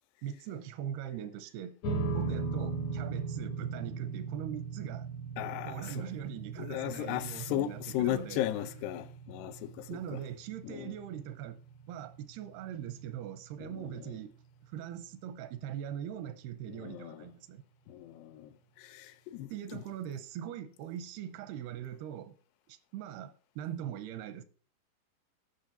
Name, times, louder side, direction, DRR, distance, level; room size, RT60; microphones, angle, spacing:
voice 1, 0.2-1.8 2.1-5.1 5.7-8.4 9.5-9.6 9.9-11.6 11.9-14.3 14.6-17.6 19.5-22.3 22.7-24.4, right 10 dB, 90° right, 2.7 m, -41 dB
sound 1, 1.8-14.4, right 4 dB, 70° left, 1.7 m, -39 dB
voice 2, 5.4-5.9 6.6-9.9 10.1-10.2 10.6-10.9 13.6-13.9 16.8-17.2 17.9-18.5 18.8-19.5, left 13 dB, 90° left, 2.8 m, -36 dB
12.5 x 6.3 x 4.0 m
omnidirectional pair, 4.6 m